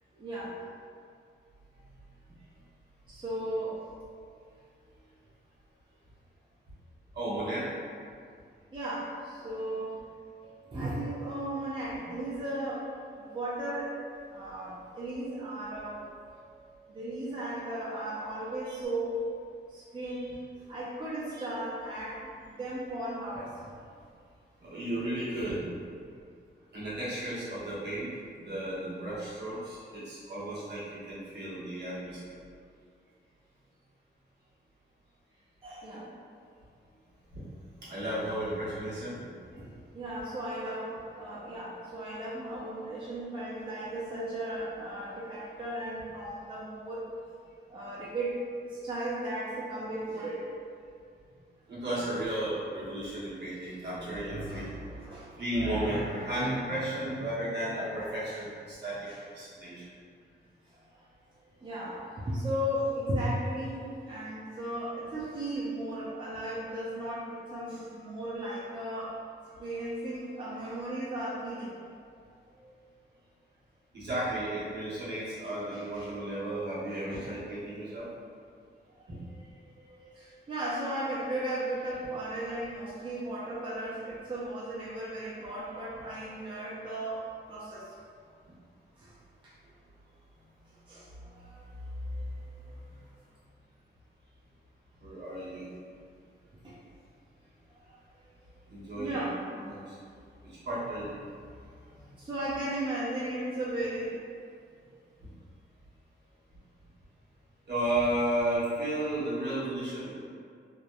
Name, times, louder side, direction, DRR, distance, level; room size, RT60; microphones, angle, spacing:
voice 1, 0.1-0.6 3.1-3.8 8.7-9.9 10.7-12.9 13.2-13.9 14.3-16.0 16.9-19.2 19.7-20.3 20.7-23.5 35.6-36.1 39.5-39.7 39.9-47.1 47.7-48.3 48.6-50.5 54.5-55.4 59.1-59.2 60.7-61.0 61.6-69.1 69.6-71.8 72.5-72.7 75.4-76.1 77.1-77.3 79.0-87.2 87.5-87.9 89.0-89.1 89.4-89.5 90.9-91.7 92.1-92.6 96.6-96.8 97.9-98.0 98.9-99.4 102.2-104.2, right 1 dB, 25° right, -8 dB, 0.4 m, -36 dB
voice 2, 7.1-7.7 11.9-12.1 18.7-18.8 21.3-21.4 24.6-25.6 26.7-28.1 28.4-32.4 37.8-39.2 51.7-55.0 55.4-59.0 59.3-59.8 68.4-68.6 73.9-78.1 95.0-95.6 98.7-99.2 99.6-100.0 100.4-101.1 102.0-102.1 107.7-110.1, right 1 dB, 65° right, -10 dB, 0.9 m, -33 dB
sound 1, 9.0-9.8 10.4-11.1 11.9-12.6 13.2-13.9 14.6-18.9, right 7 dB, 45° right, 1.2 m, -57 dB
2.9 x 2.0 x 2.2 m, 2.2 s
wide cardioid pair, 145°, 19 cm